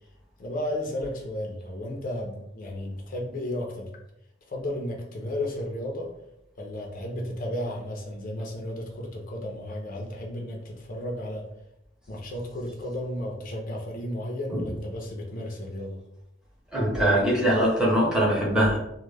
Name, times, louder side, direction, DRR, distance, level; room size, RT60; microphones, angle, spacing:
voice 1, 0.4-3.9 4.5-6.1 6.6-11.5 12.1-16.0, left 1 dB, 45° left, 0 dB, 0.4 m, -33 dB
voice 2, 16.7-18.8, right 1 dB, 5° right, -5 dB, 0.6 m, -22 dB
2.1 x 2.0 x 3.2 m, 0.83 s
head